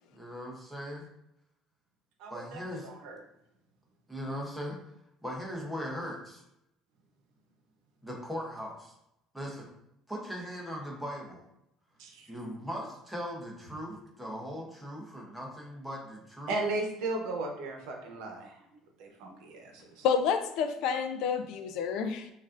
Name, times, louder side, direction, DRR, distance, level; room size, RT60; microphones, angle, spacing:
voice 1, 0.1-1.0 2.3-2.9 4.1-4.8 5.2-6.4 8.0-8.9 9.3-9.7 10.1-11.4 12.3-16.6, equal, ahead, -3 dB, 0.8 m, -39 dB
voice 2, 2.2-3.2 12.0-12.3 16.5-18.6 19.0-20.1, right 2 dB, 70° right, 2 dB, 0.8 m, -36 dB
voice 3, 20.0-22.3, left 6 dB, 60° left, 8 dB, 0.4 m, -29 dB
6.0 x 2.5 x 2.4 m, 0.82 s
cardioid pair, 175°, 0 cm